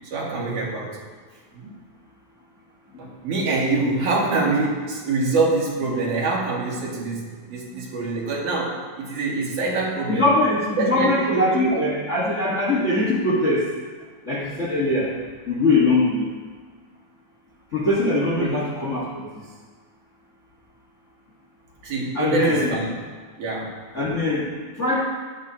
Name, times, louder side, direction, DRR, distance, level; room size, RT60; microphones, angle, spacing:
voice 1, 0.1-1.0 1.5-1.7 3.0-10.3 10.8-11.8 18.4-18.6 21.8-22.9 23.4-23.7, right 3 dB, 75° right, -4 dB, 3.5 m, -25 dB
voice 2, 10.1-13.7 14.2-15.1 15.5-16.3 17.7-19.1 19.3-19.4 22.1-22.7 23.9-24.5 24.8-25.1, left 2 dB, 45° left, -5 dB, 0.9 m, -21 dB
14.0 x 11.0 x 2.8 m, 1.5 s
omnidirectional pair, 3.5 m